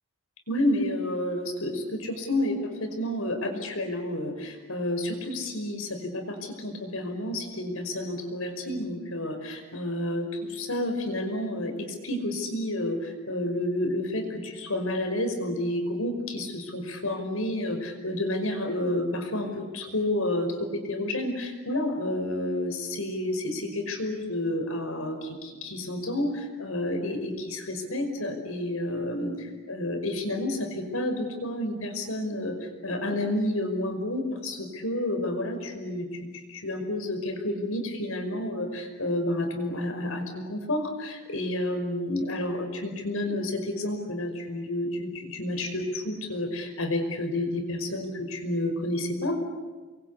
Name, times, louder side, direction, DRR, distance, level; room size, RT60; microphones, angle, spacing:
voice 1, 0.5-36.1 36.3-49.4, left 1 dB, 80° left, 6 dB, 5.5 m, -30 dB
29.5 x 23.0 x 8.4 m, 1.3 s
head